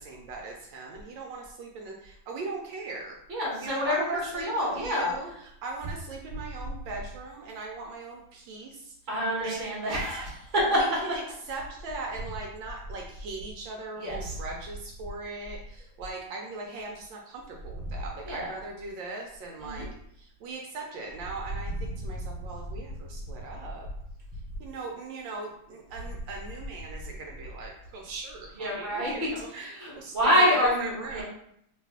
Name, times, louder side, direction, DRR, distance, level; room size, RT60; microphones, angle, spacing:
voice 1, 0.0-3.2 3.6-10.1 10.7-11.2 11.5-19.9 20.2-23.9 24.6-31.2, right 3 dB, 80° right, 0 dB, 1.3 m, -39 dB
voice 2, 3.3-5.1 9.1-10.8 14.0-14.3 18.3-18.5 19.6-19.8 28.6-29.1 29.6-31.2, equal, 25° right, -6 dB, 1.3 m, -27 dB
3.2 x 2.5 x 3.4 m, 0.73 s
omnidirectional pair, 2.1 m